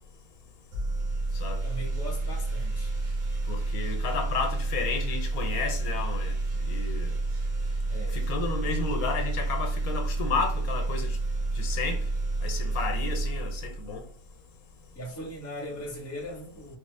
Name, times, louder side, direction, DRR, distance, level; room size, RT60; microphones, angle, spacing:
sound 1, 0.7-14.1, right 2 dB, 65° right, 1.2 m, -30 dB
voice 1, 1.6-3.0 7.9-8.2 14.9-16.8, equal, 15° left, 0.5 m, -39 dB
voice 2, 3.5-6.3 6.6-7.2 8.1-11.2 11.6-12.0 12.4-14.0, left 5 dB, 80° left, 1.1 m, -32 dB
3.4 x 2.1 x 3.2 m
omnidirectional pair, 1.5 m